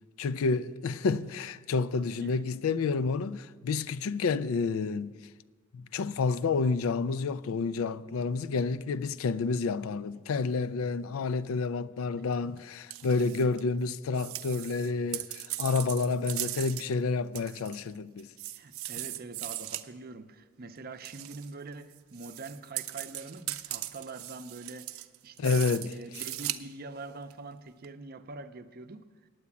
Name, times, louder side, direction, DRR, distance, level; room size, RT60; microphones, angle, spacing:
voice 1, 0.2-5.1 5.7-18.3 25.4-25.9, left 4 dB, 80° left, 0.4 m, -29 dB
sound 1, 12.6-12.7 12.9-13.6 14.1-16.9 17.4-17.9 18.2-19.9 21.0-21.5 21.9-26.6 27.3-27.4 27.8-27.9, right 15 dB, 90° right, 0.5 m, -38 dB
voice 2, 18.6-29.1, right 3 dB, 45° right, 0.6 m, -44 dB
9.4 x 8.4 x 8.4 m
head